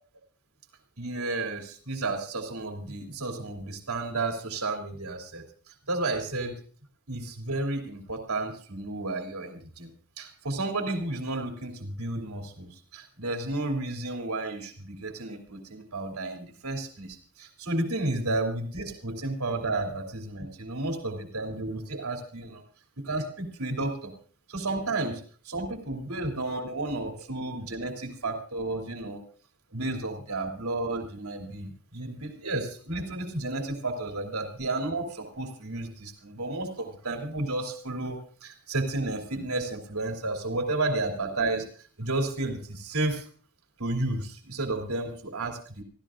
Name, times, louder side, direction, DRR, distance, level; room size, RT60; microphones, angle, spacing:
voice 1, 1.0-5.4 5.9-6.6 7.1-9.9 10.2-22.6 23.0-24.1 24.5-29.2 29.7-43.2 43.8-45.8, right 2 dB, 85° right, 3 dB, 3.0 m, -32 dB
27.0 x 15.0 x 2.5 m, 0.43 s
head